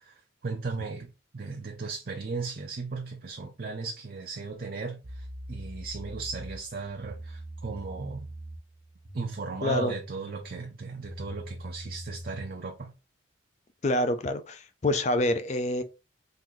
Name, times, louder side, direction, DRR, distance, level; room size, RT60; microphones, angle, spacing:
voice 1, 0.0-8.3 9.1-12.9, right 4 dB, 50° right, 0.5 m, -36 dB
sound 1, 5.0-12.5, equal, 70° right, 1.1 m, -43 dB
voice 2, 9.6-9.9 13.8-15.8, left 1 dB, 35° left, 0.4 m, -27 dB
3.8 x 2.6 x 3.0 m
head